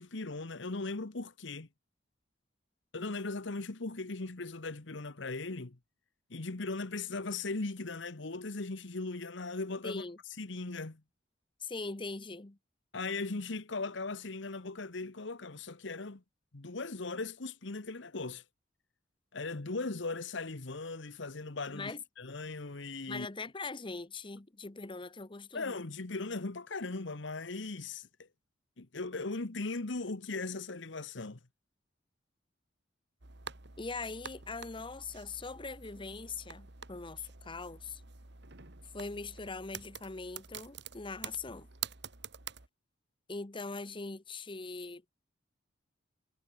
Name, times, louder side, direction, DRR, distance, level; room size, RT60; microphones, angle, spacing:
voice 1, 0.0-1.7 2.9-5.8 6.3-10.0 10.4-11.0 12.9-16.2 16.5-18.4 19.3-23.3 25.5-28.1 28.8-31.4, left 3 dB, 70° left, 1.3 m, -38 dB
voice 2, 9.8-10.2 11.6-12.6 21.7-22.0 23.1-25.8 33.8-38.0 38.9-41.7 43.3-45.1, left 3 dB, 25° left, 1.0 m, -41 dB
sound 1, 33.2-42.7, right 7 dB, 60° right, 2.4 m, -47 dB
head